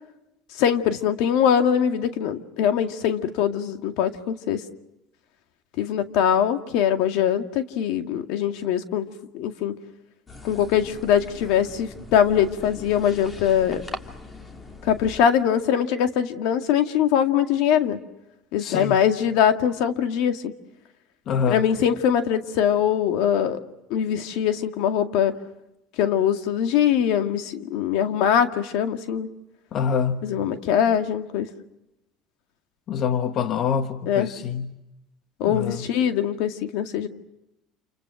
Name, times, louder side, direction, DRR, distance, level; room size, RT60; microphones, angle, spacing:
voice 1, 0.6-4.6 5.8-9.1 9.3-9.8 10.4-13.8 14.8-18.0 18.5-20.5 21.5-23.6 23.9-25.4 26.0-29.3 30.2-31.5 34.1-34.3 35.4-37.1, left 9 dB, 75° left, 2.1 m, -22 dB
sound 1, 10.3-15.2, left 3 dB, 20° left, 2.8 m, -40 dB
voice 2, 18.6-19.0 21.3-21.7 29.7-30.3 32.9-34.8 35.5-35.9, left 7 dB, 50° left, 1.2 m, -26 dB
29.5 x 29.0 x 6.3 m
supercardioid pair, 115°, 0 cm